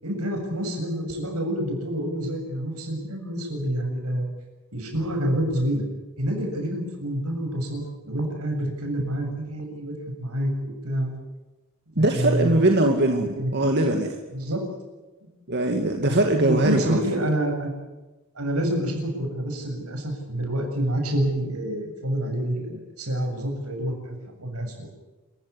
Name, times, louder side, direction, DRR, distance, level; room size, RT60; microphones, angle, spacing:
voice 1, 0.0-4.3 4.7-5.8 6.2-9.9 10.2-11.1 11.9-12.6 13.2-13.5 14.3-14.6 16.0-16.2 16.5-17.7 18.4-24.9, right 1 dB, 80° right, 3 dB, 7.4 m, -28 dB
voice 2, 12.0-14.2 15.5-17.2, right 1 dB, 50° right, 3 dB, 2.3 m, -21 dB
27.0 x 16.0 x 9.8 m, 1.1 s
head